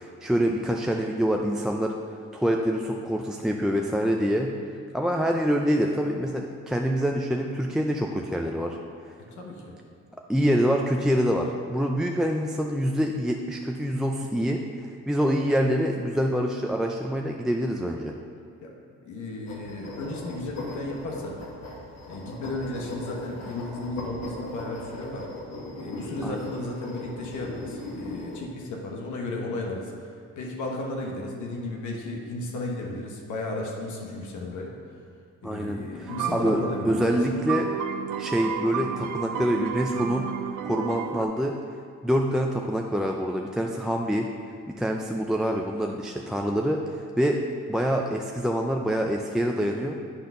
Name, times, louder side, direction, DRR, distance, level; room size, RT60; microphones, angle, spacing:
voice 1, 0.0-1.9 2.3-4.5 4.9-8.8 10.3-14.6 15.1-18.1 26.2-26.4 35.4-37.7 38.2-40.3 40.6-41.5 42.0-44.3 44.7-47.4 47.7-50.0, equal, ahead, 0 dB, 0.4 m, -26 dB
voice 2, 9.3-9.7 18.6-21.4 22.1-25.3 25.8-34.7 35.4-37.2, left 2 dB, 80° left, -1 dB, 1.3 m, -34 dB
sound 1, 19.5-28.4, left 2 dB, 60° left, 1.5 m, -39 dB
sound 2, 36.1-41.3, right 8 dB, 90° right, 0.5 m, -32 dB
8.7 x 3.9 x 5.5 m, 2.2 s
cardioid pair, 90°, 30 cm